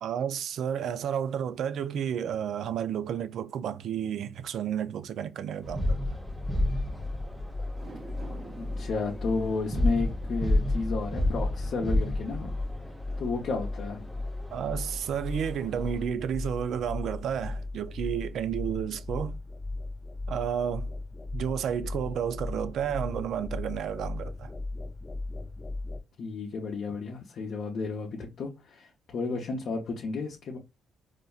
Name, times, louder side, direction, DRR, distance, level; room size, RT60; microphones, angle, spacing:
voice 1, 0.0-6.0 14.5-19.4 20.3-20.9 21.3-24.5, right 9 dB, 70° right, 0.3 m, -31 dB
sound 1, 5.6-16.0, left 1 dB, 15° right, 0.7 m, -32 dB
sound 2, 6.1-26.0, left 2 dB, 20° left, 0.4 m, -37 dB
sound 3, 7.7-14.2 14.6-14.7, right 3 dB, 40° right, 1.0 m, -51 dB
voice 2, 8.6-12.6 13.2-14.1 26.2-30.6, left 4 dB, 60° left, 0.7 m, -32 dB
4.1 x 2.5 x 2.3 m
cardioid pair, 100°, 0 cm